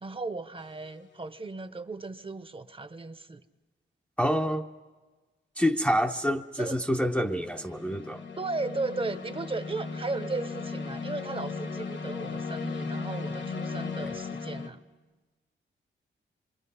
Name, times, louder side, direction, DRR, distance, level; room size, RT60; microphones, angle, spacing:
voice 1, 0.0-3.4 6.5-6.8 8.4-14.8, right 3 dB, 25° right, 0.8 m, -36 dB
sound 1, 0.6-1.0 6.9-14.7, left 4 dB, 60° left, 1.5 m, -37 dB
voice 2, 4.2-4.7 5.6-8.2, equal, 5° left, 0.6 m, -27 dB
27.0 x 23.5 x 5.6 m
wide cardioid pair, 150°, 21 cm